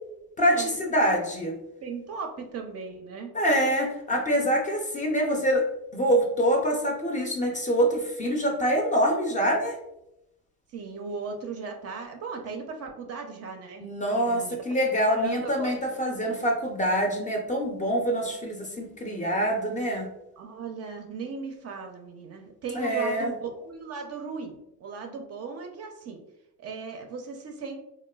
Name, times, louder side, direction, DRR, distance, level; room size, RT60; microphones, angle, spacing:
voice 1, 0.4-1.6 3.3-5.6 5.9-9.8 13.8-20.1 22.7-23.3, equal, 20° left, 1 dB, 0.4 m, -25 dB
voice 2, 1.8-3.3 4.1-4.2 10.7-13.9 14.2-14.6 15.1-15.7 20.4-26.2 26.6-27.8, right 5 dB, 45° right, 4 dB, 0.4 m, -37 dB
3.0 x 2.1 x 2.2 m, 0.86 s
cardioid pair, 105°, 37 cm